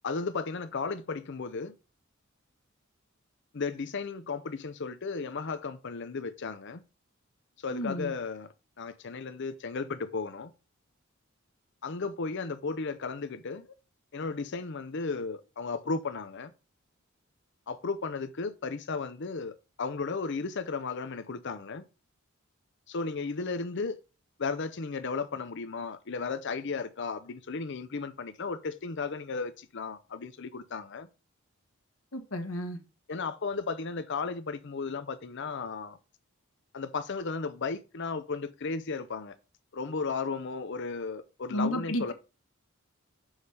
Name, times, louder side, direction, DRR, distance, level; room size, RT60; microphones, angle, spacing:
voice 1, 0.0-1.7 3.5-6.8 7.6-8.5 8.8-10.5 11.8-13.7 14.1-16.5 17.7-21.8 22.9-24.0 24.4-31.1 33.1-36.0 36.7-39.3 39.7-42.1, left 4 dB, 60° left, 0.7 m, -34 dB
voice 2, 7.7-8.1 32.1-32.8 41.5-42.1, equal, 75° left, 1.4 m, -32 dB
6.4 x 4.9 x 5.5 m
head